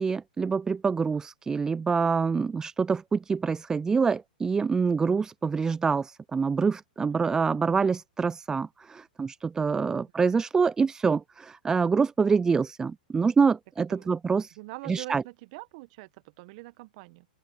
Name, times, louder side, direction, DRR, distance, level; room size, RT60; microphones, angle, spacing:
voice 1, 0.0-14.6 14.9-15.2, right 5 dB, 10° right, 0.3 m, -26 dB
voice 2, 14.6-17.3, right 24 dB, 50° right, 1.6 m, -44 dB
open air
hypercardioid pair, 110°, 5 cm